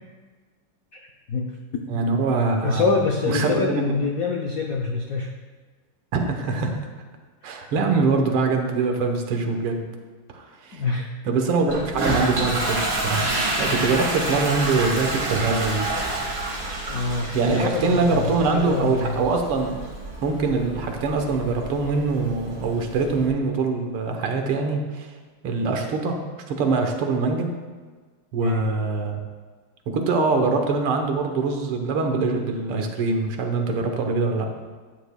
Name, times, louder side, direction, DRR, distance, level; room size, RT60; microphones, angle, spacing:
voice 1, 1.9-2.8 3.3-3.8 6.1-6.8 7.4-9.8 10.3-10.8 11.3-13.3 13.6-15.9 17.3-19.8 20.2-25.1 25.4-26.2 26.5-27.5 28.3-29.2 29.9-34.5, right 4 dB, 80° right, 4 dB, 1.9 m, -23 dB
voice 2, 2.6-5.3 10.7-11.1 16.9-19.2 28.4-28.7, left 4 dB, 85° left, 1 dB, 0.7 m, -25 dB
Toilet flush, 11.7-23.3, right 2 dB, 55° right, 2.2 m, -29 dB
sound 1, 13.1-23.4, right 1 dB, 20° right, 1.7 m, -37 dB
13.0 x 9.5 x 2.2 m, 1.4 s
omnidirectional pair, 2.4 m